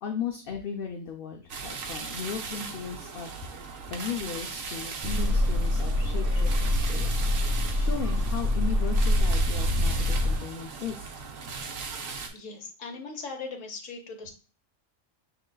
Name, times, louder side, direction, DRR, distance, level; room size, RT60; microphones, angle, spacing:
voice 1, 0.0-3.5 3.9-11.1, left 6 dB, 55° left, 3 dB, 0.7 m, -37 dB
sound 1, 1.5-12.3, right 5 dB, 80° right, 1.2 m, -38 dB
sound 2, 5.0-10.4, left 1 dB, 45° right, 1.2 m, -25 dB
voice 2, 12.3-14.3, left 4 dB, 75° left, 4 dB, 1.3 m, -39 dB
6.2 x 3.9 x 2.2 m, 0.36 s
omnidirectional pair, 1.4 m